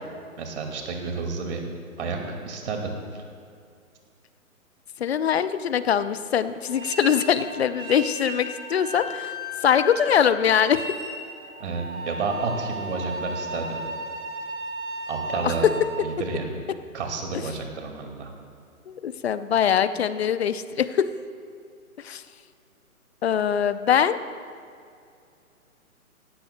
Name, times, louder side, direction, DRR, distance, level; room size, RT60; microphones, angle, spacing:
voice 1, 0.4-1.6 2.0-3.2 11.6-13.8 15.1-15.7 16.0-16.5 16.9-18.3, right 4 dB, 50° right, 3 dB, 2.2 m, -30 dB
voice 2, 5.0-9.3 9.6-10.8 15.4-15.7 17.3-17.4 18.9-21.1 22.0-22.2 23.2-24.2, left 8 dB, 50° left, 13 dB, 0.6 m, -22 dB
sound 1, 6.7-15.9, right 1 dB, 10° right, 2.5 m, -35 dB
17.0 x 15.5 x 2.2 m, 2.4 s
hypercardioid pair, 145°, 43 cm